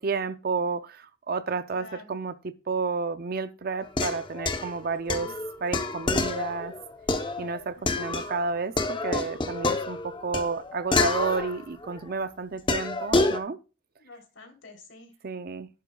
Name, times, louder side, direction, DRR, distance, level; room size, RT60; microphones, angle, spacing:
voice 1, 0.0-5.3 5.6-6.7 7.4-13.6 15.2-15.7, right 4 dB, 50° right, 0.5 m, -31 dB
voice 2, 1.7-2.1 5.1-5.4 7.7-8.2 14.0-15.1, left 2 dB, 80° left, 3.4 m, -49 dB
sound 1, 3.8-8.5 8.8-12.0 12.7-13.4, left 3 dB, 25° left, 0.8 m, -28 dB
11.0 x 10.5 x 2.3 m
head